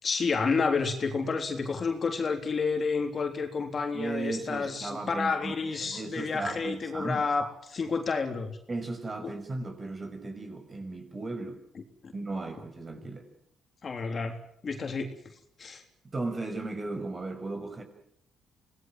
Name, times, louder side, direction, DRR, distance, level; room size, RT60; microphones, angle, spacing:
voice 1, 0.0-8.6 9.2-9.3 12.0-12.1 13.8-14.4 14.6-15.1 15.6-15.8, left 4 dB, 45° left, 5 dB, 3.6 m, -30 dB
voice 2, 3.9-7.2 8.7-11.6 12.1-13.3 16.1-17.8, right 2 dB, 30° right, 7 dB, 6.1 m, -36 dB
25.5 x 19.0 x 7.8 m, 0.71 s
cardioid pair, 90°, 0 cm